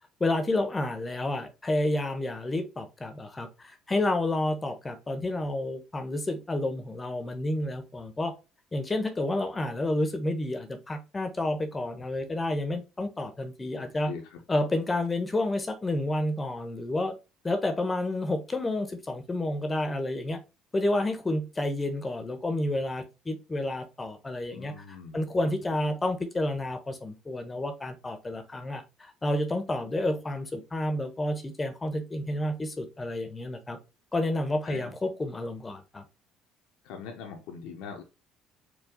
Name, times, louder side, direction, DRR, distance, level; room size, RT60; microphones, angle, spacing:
voice 1, 0.2-8.3 8.7-14.1 14.5-17.1 17.4-20.4 20.7-33.8 34.1-36.0, left 1 dB, 25° left, 7 dB, 0.8 m, -30 dB
voice 2, 13.7-14.4 24.5-25.3 34.6-34.9 36.8-38.0, left 6 dB, 75° left, 3 dB, 0.7 m, -42 dB
4.5 x 2.3 x 3.5 m, 0.28 s
hypercardioid pair, 65°, 0 cm